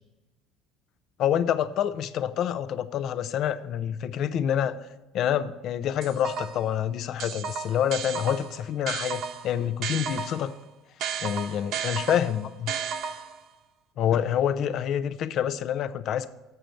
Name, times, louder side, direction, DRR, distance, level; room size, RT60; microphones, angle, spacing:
voice 1, 1.2-4.8 5.1-10.5 11.2-12.7 14.0-16.3, left 9 dB, 55° left, 13 dB, 0.6 m, -27 dB
sound 1, 6.0-6.7 7.2-10.5 11.0-13.5, right 7 dB, 60° right, 0.9 m, -34 dB
7.7 x 6.6 x 6.9 m, 1.1 s
cardioid pair, 120°, 0 cm